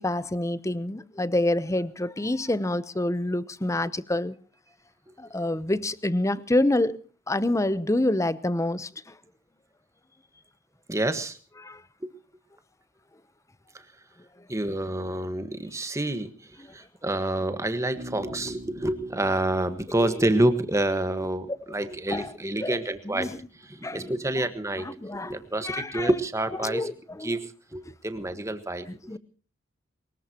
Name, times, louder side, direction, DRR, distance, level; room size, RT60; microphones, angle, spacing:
voice 1, 0.0-4.3 5.2-7.0 7.3-9.1 11.6-11.8 20.0-20.1 22.1-22.3 22.6-22.8 23.1-23.3 23.8-24.0 24.8-25.4 25.6-26.1 26.6-27.3 28.9-29.2, left 1 dB, 15° left, 0.7 m, -27 dB
voice 2, 10.9-11.4 12.0-12.1 13.7-13.8 14.5-23.3 23.6-24.9 25.1-26.9 27.2-27.4 27.7-28.9, right 1 dB, 15° right, 1.5 m, -28 dB
Bass guitar, 18.0-21.6, equal, 60° right, 3.0 m, -46 dB
23.5 x 21.0 x 2.9 m
head